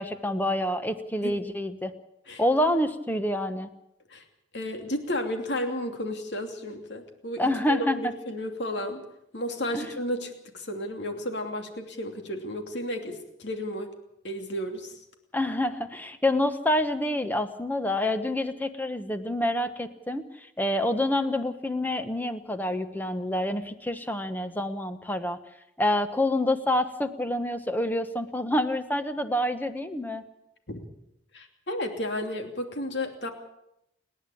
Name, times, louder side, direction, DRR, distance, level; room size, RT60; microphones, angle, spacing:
voice 1, 0.0-1.9 2.4-3.7 7.4-8.1 9.7-10.0 15.3-25.4 25.8-30.2, left 1 dB, 10° left, 9 dB, 1.1 m, -27 dB
voice 2, 4.5-9.0 9.3-13.9 14.2-14.9 30.7-30.8 31.3-33.3, left 1 dB, 60° left, 5 dB, 2.8 m, -33 dB
29.5 x 10.5 x 8.6 m, 0.83 s
head